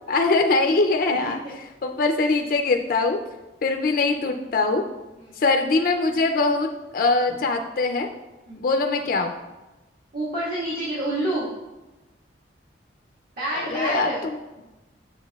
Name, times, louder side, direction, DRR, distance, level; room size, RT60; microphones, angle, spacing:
voice 1, 0.1-1.4 1.8-3.2 3.6-4.8 5.4-8.1 8.6-9.3 13.6-14.4, left 3 dB, 50° left, 4 dB, 0.3 m, -22 dB
voice 2, 10.1-11.5 13.4-14.2, right 1 dB, 50° right, -9 dB, 1.6 m, -28 dB
7.5 x 7.2 x 2.3 m, 1.1 s
head